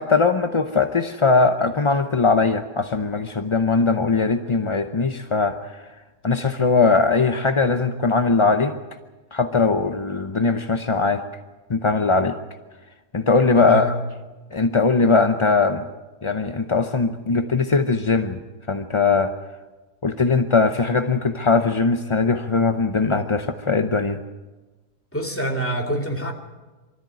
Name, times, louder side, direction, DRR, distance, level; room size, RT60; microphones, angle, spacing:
voice 1, 0.0-5.8 6.2-8.8 9.3-11.2 11.7-12.4 13.1-13.9 14.5-15.8 16.2-18.4 18.7-19.3 20.0-24.2, left 4 dB, 35° left, 7 dB, 0.4 m, -20 dB
voice 2, 13.6-14.0 25.1-26.3, right 1 dB, 10° left, 1 dB, 2.6 m, -26 dB
24.0 x 13.5 x 9.1 m, 1.2 s
omnidirectional pair, 1.7 m